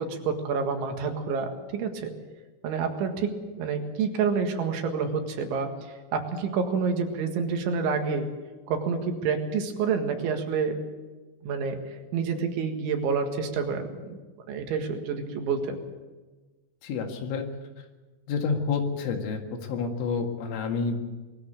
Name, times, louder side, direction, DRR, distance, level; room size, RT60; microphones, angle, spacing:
voice 1, 0.0-2.1 2.6-8.3 8.7-10.8 11.4-14.2 14.5-15.8, right 5 dB, 70° right, 4 dB, 4.0 m, -28 dB
voice 2, 16.8-17.5 18.3-21.0, left 5 dB, 75° left, 3 dB, 4.3 m, -29 dB
21.5 x 13.5 x 8.8 m, 1.3 s
omnidirectional pair, 5.7 m